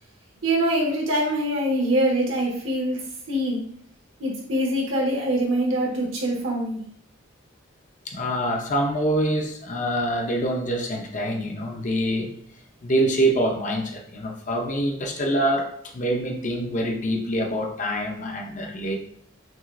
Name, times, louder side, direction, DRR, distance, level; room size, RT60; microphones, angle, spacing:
voice 1, 0.4-3.0 3.3-3.6 4.2-6.8, right 1 dB, 70° right, -3 dB, 1.4 m, -24 dB
voice 2, 8.1-12.3 12.8-19.0, right 1 dB, 40° left, 2 dB, 0.6 m, -25 dB
6.1 x 2.4 x 2.5 m, 0.66 s
head